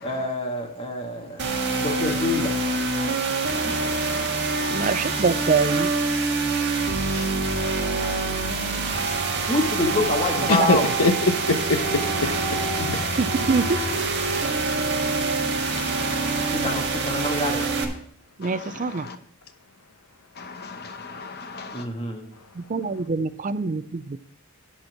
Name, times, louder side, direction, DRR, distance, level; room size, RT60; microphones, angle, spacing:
voice 1, 0.0-1.4 1.8-2.6 9.5-10.9 12.8-13.0 16.5-17.6 21.7-22.2, left 1 dB, 25° left, 1.7 m, -26 dB
sound 1, 1.4-17.8, right 3 dB, 50° right, 1.7 m, -25 dB
voice 2, 3.6-5.2 7.6-9.2 13.4-14.1 15.7-16.5 18.4-19.2 20.4-21.9, left 3 dB, 45° left, 1.0 m, -39 dB
voice 3, 4.7-5.9 10.6-10.7 13.2-13.6 18.4-19.0 22.7-24.2, right 4 dB, 35° right, 0.4 m, -24 dB
voice 4, 10.5-12.3 14.7-14.9, left 3 dB, 75° left, 1.0 m, -23 dB
11.0 x 4.4 x 7.1 m
head